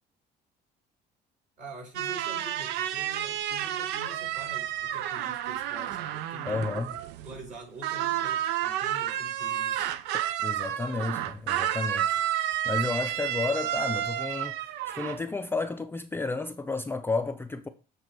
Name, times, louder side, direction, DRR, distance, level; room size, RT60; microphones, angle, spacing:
voice 1, 1.6-6.7 7.2-9.9, right 1 dB, 50° right, 4.0 m, -45 dB
sound 1, 1.9-7.5 7.8-15.2, right 11 dB, 90° right, 0.4 m, -31 dB
voice 2, 6.5-6.9 10.4-12.2 12.7-17.7, left 3 dB, 15° left, 0.4 m, -32 dB
7.7 x 3.3 x 4.4 m
cardioid pair, 110°, 17 cm